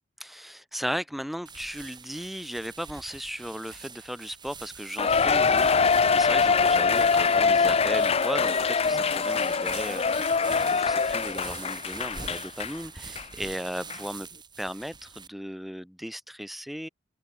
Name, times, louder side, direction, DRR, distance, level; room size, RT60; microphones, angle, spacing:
voice 1, 0.2-14.3 14.6-16.9, equal, ahead, 1.1 m, -36 dB
sound 1, 1.5-15.3, right 5 dB, 25° right, 7.0 m, -44 dB
Cheering, 5.0-12.8 13.2-13.3 13.9-14.0, left 5 dB, 35° left, 0.6 m, -23 dB
open air
head